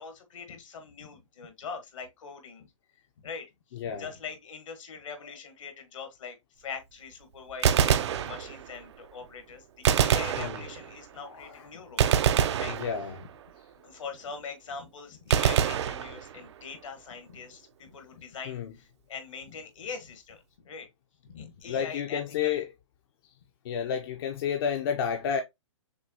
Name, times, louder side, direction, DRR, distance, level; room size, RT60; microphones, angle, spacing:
voice 1, 0.0-2.7 3.2-12.1 12.6-12.8 13.8-20.9 21.2-22.6, left 5 dB, 70° left, 1.5 m, -42 dB
voice 2, 3.7-4.1 10.4-10.6 11.2-11.7 12.7-13.3 18.5-18.7 21.6-22.7 23.6-25.4, left 7 dB, 45° left, 0.6 m, -31 dB
Gunshot gunfire, 7.5-8.9 9.8-11.1 12.0-13.4 15.3-16.6, right 9 dB, 55° right, 0.5 m, -25 dB
6.3 x 2.3 x 2.8 m
hypercardioid pair, 145°, 17 cm